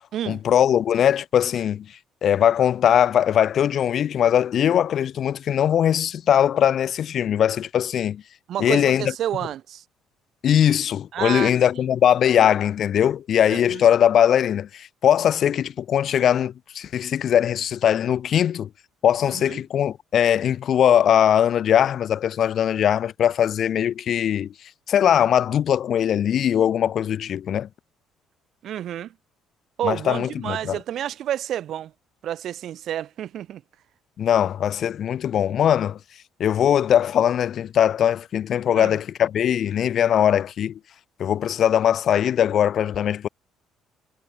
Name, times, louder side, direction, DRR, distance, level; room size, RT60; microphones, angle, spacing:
voice 1, 0.3-1.9 2.2-8.2 8.6-9.1 10.4-18.7 19.0-24.5 24.9-27.7 29.8-30.8 34.2-36.0 36.4-40.8 41.2-43.3, left 9 dB, 60° left, 2.6 m, -20 dB
voice 2, 8.5-9.8 11.1-11.5 13.7-13.8 19.3-19.6 28.6-29.1 29.8-31.9 32.2-33.6 38.7-39.0, right 11 dB, 65° right, 2.1 m, -29 dB
supercardioid pair, 75°, 0 cm